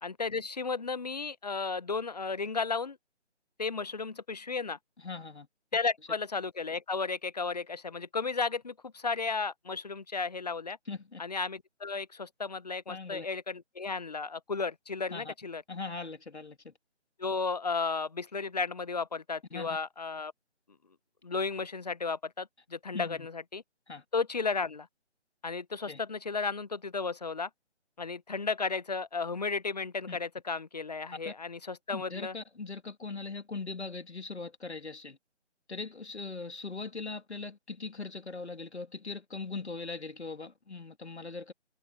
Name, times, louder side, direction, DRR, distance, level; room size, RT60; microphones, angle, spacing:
voice 1, 0.0-3.0 3.6-4.8 5.7-10.8 11.2-15.6 17.2-20.3 21.2-23.6 24.1-24.9 25.4-27.5 28.0-32.3, left 4 dB, 35° left, 0.8 m, -34 dB
voice 2, 5.0-5.5 10.9-11.2 12.9-13.3 15.1-15.3 15.7-16.7 19.5-19.7 22.9-23.3 23.9-24.0 25.9-26.0 30.1-30.2 31.2-31.3 31.9-35.2 35.7-41.5, left 4 dB, 70° left, 2.8 m, -40 dB
figure-of-eight pair, 155°, 35 cm